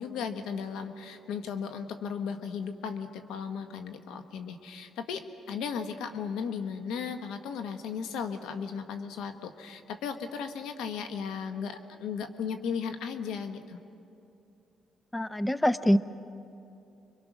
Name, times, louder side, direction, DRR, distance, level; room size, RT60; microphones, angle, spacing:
voice 1, 0.0-13.8, left 6 dB, 90° left, 8 dB, 1.3 m, -36 dB
voice 2, 15.1-16.0, equal, 10° left, 14 dB, 0.6 m, -24 dB
27.0 x 23.5 x 6.2 m, 2.7 s
cardioid pair, 90°, 0 cm